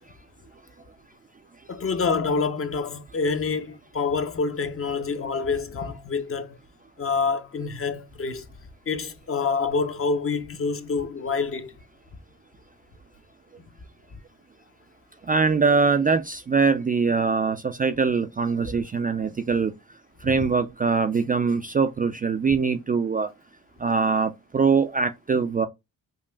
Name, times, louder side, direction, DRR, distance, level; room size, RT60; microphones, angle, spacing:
voice 1, 1.7-6.6 7.0-8.4 8.9-11.7 18.7-18.8 20.2-20.4, left 4 dB, 35° left, 0.7 m, -27 dB
voice 2, 15.3-19.7 20.2-23.3 23.8-25.7, right 5 dB, 25° right, 0.3 m, -23 dB
5.2 x 2.4 x 2.2 m
supercardioid pair, 70°, 38 cm